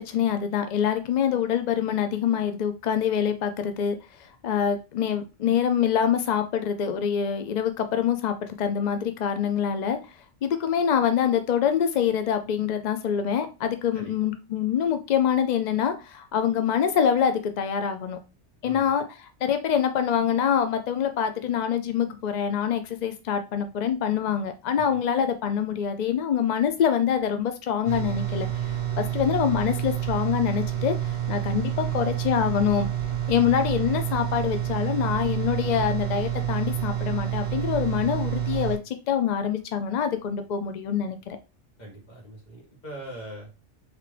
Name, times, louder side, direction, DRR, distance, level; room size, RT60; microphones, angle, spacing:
voice 1, 0.0-10.0 10.4-18.2 18.6-19.0 19.4-32.9 33.3-41.4, left 8 dB, 70° left, 0.4 m, -25 dB
sound 1, 27.8-38.8, right 11 dB, 30° right, 0.9 m, -28 dB
voice 2, 41.8-43.5, right 1 dB, 35° left, 1.6 m, -41 dB
3.7 x 3.5 x 3.2 m
omnidirectional pair, 1.2 m